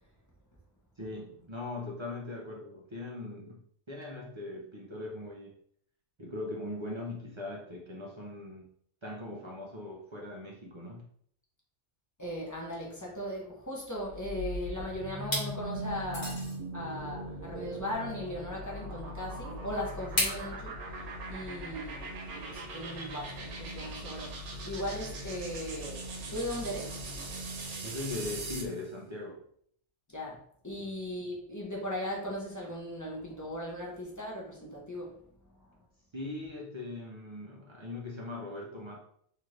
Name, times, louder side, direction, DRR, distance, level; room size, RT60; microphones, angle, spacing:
voice 1, 1.0-3.6 3.9-5.5 6.2-8.7 9.0-11.0 27.8-29.4 30.8-30.9 36.1-39.0, left 2 dB, 45° right, -3 dB, 0.4 m, -40 dB
voice 2, 12.2-16.5 16.7-26.0 26.3-27.0 30.1-30.4 30.6-35.1, left 1 dB, 25° left, -4 dB, 0.4 m, -38 dB
sound 1, 14.0-28.8, right 1 dB, 80° right, 1.0 m, -40 dB
sound 2, 14.4-14.8 15.2-15.5 16.1-16.6 18.1-18.2 20.2-20.4, left 1 dB, 65° left, 1.3 m, -32 dB
2.8 x 2.4 x 3.1 m, 0.65 s
omnidirectional pair, 1.2 m